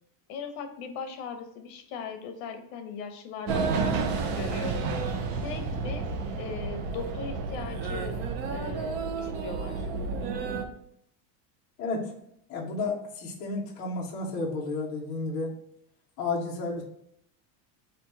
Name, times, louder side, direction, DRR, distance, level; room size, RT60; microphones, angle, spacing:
voice 1, 0.3-4.8 5.4-6.0 6.4-8.2 8.5-9.9, left 5 dB, 55° left, 6 dB, 0.7 m, -39 dB
sound 1, 3.5-10.6, right 4 dB, 90° right, 0.8 m, -31 dB
voice 2, 11.8-12.1 12.5-15.6 16.2-16.8, left 3 dB, 25° left, -5 dB, 0.3 m, -32 dB
4.3 x 2.6 x 4.6 m, 0.73 s
cardioid pair, 180°, 48 cm